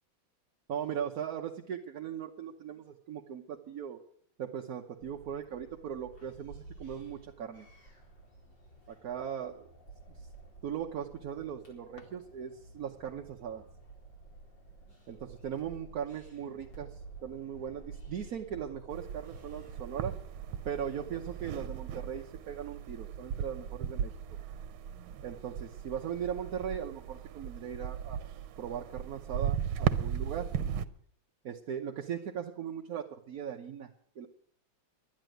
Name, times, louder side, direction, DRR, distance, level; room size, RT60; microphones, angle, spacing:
voice 1, 0.7-4.0 4.4-7.7 8.9-9.7 10.6-13.7 15.1-20.2 20.6-24.1 25.2-28.2 28.6-30.5 31.4-33.9 34.2-34.3, right 8 dB, 55° right, 2 dB, 1.2 m, -39 dB
sound 1, 5.0-22.2, right 3 dB, 60° left, 5.2 m, -52 dB
sound 2, 11.8-12.9, left 2 dB, 30° left, 1.8 m, -61 dB
sound 3, 18.9-30.8, right 9 dB, 90° right, 1.6 m, -37 dB
12.0 x 10.0 x 9.1 m, 0.63 s
omnidirectional pair, 2.2 m